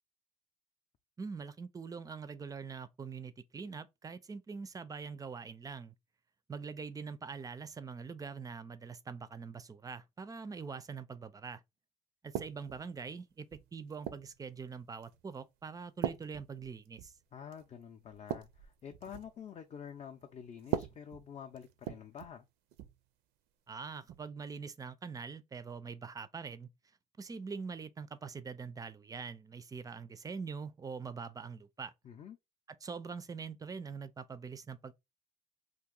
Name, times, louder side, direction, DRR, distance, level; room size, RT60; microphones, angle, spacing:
voice 1, 1.2-5.9 6.5-11.6 12.2-17.1 23.7-26.7 27.2-31.9 32.7-34.9, right 5 dB, 20° right, 0.4 m, -44 dB
sound 1, 12.3-12.9 13.5-14.4 15.0-15.3 16.0-17.2 17.5-17.7 18.1-19.4 20.6-22.4 22.7-23.0 24.1-24.3, right 10 dB, 85° right, 0.5 m, -40 dB
voice 2, 17.3-22.5 32.0-32.4, left 8 dB, 35° left, 0.5 m, -48 dB
2.8 x 2.5 x 3.6 m
cardioid pair, 110°, 17 cm